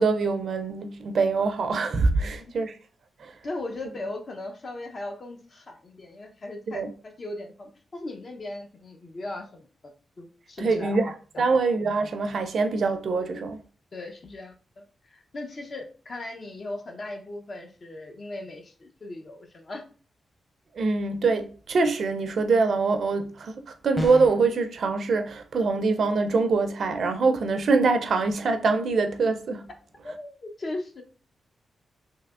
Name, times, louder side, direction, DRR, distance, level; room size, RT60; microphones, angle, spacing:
voice 1, 0.0-2.8 3.2-3.3 6.7-6.9 10.6-13.6 20.8-29.6, right 4 dB, 65° right, 0.4 m, -24 dB
voice 2, 2.2-2.5 3.4-9.7 10.2-11.0 11.3-11.6 13.2-13.3 13.9-19.8 30.0-31.0, left 2 dB, 50° left, 0.7 m, -38 dB
sound 1, 24.0-24.5, left 1 dB, 5° left, 0.7 m, -31 dB
3.3 x 2.7 x 2.4 m
cardioid pair, 65°, 0 cm